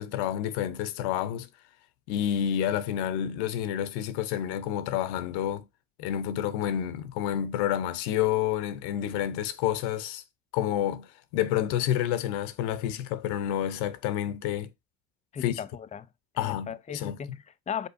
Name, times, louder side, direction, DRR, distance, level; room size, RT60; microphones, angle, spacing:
voice 1, 0.0-1.5 2.1-5.6 6.0-10.2 10.5-14.7 15.4-15.6 16.4-17.2, left 11 dB, 80° left, 0.7 m, -29 dB
voice 2, 15.3-16.1 16.3-17.9, left 7 dB, 20° left, 0.4 m, -37 dB
5.3 x 3.8 x 2.5 m
supercardioid pair, 75°, 39 cm